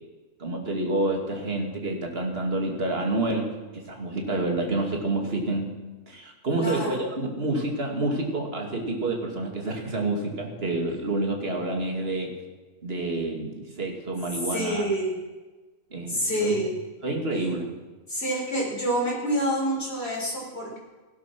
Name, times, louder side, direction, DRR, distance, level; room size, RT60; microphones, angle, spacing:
voice 1, 0.4-5.7 6.1-12.4 12.8-14.8 15.9-16.6 17.0-17.7, right 2 dB, 40° right, 2 dB, 2.5 m, -28 dB
voice 2, 6.6-7.0 14.5-15.2 16.1-16.8 18.1-20.8, equal, 40° left, -3 dB, 5.0 m, -27 dB
16.0 x 12.0 x 6.1 m, 1.2 s
omnidirectional pair, 1.6 m